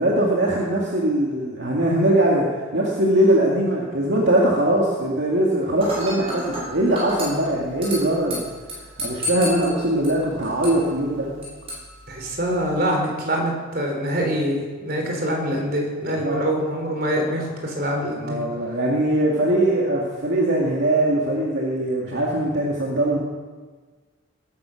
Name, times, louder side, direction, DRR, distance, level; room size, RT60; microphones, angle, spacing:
voice 1, 0.0-2.5 2.7-8.5 9.0-11.3 16.2-16.4 18.2-23.2, right 1 dB, 65° right, -3 dB, 2.4 m, -21 dB
Dishes pots and pans / Glass, 5.8-12.8, equal, 30° right, 6.3 m, -34 dB
voice 2, 12.1-18.4 18.7-18.8, equal, 50° right, 1 dB, 3.9 m, -25 dB
20.5 x 10.5 x 6.5 m, 1.4 s
head